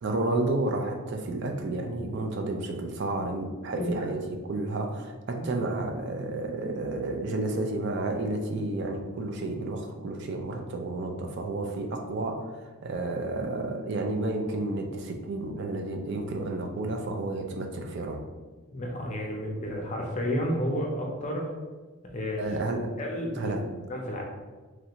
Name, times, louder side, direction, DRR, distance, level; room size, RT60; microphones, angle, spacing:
voice 1, 0.0-18.2 22.4-22.9 23.4-23.7, right 2 dB, 50° right, 3 dB, 0.4 m, -31 dB
voice 2, 18.7-21.5 22.1-22.5 23.0-23.5 23.9-24.2, equal, 35° left, -1 dB, 0.5 m, -31 dB
3.1 x 2.5 x 2.9 m, 1.3 s
head